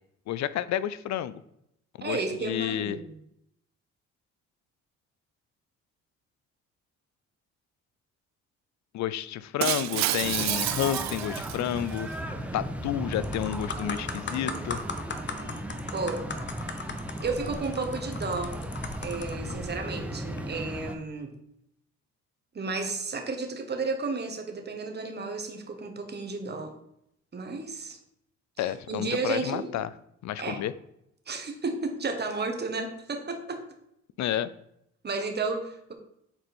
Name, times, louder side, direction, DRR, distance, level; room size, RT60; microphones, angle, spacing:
voice 1, 0.3-1.4 2.0-3.0 8.9-12.1 12.5-14.8 28.6-29.9 30.2-30.7 34.2-34.5, left 11 dB, 65° left, 16 dB, 0.5 m, -30 dB
voice 2, 2.0-3.1 12.9-13.1 15.9-16.3 17.2-18.5 19.0-21.3 22.5-26.8 27.3-28.0 28.6-29.7 30.4-30.6 31.3-33.6 35.0-35.9, right 3 dB, 35° right, 4 dB, 1.4 m, -32 dB
Shatter, 9.6-12.0, right 14 dB, 65° right, 0.4 m, -29 dB
sound 1, 10.2-21.0, right 1 dB, 5° right, 0.8 m, -36 dB
sound 2, 12.7-12.8 13.1-19.5 20.2-20.4, left 4 dB, 40° left, 0.9 m, -38 dB
7.8 x 4.3 x 4.4 m, 0.77 s
cardioid pair, 90°, 30 cm